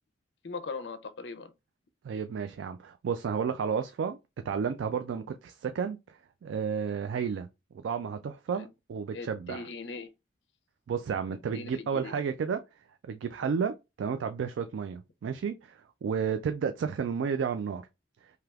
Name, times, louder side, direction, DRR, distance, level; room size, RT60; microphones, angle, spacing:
voice 1, 0.4-1.5 8.5-8.7 9.1-10.1 11.3-12.1, left 4 dB, 65° left, 0.5 m, -40 dB
voice 2, 2.0-4.2 4.5-7.5 7.7-9.7 10.9-12.6 13.0-17.8, right 6 dB, 75° right, 0.3 m, -32 dB
3.3 x 2.8 x 2.3 m
head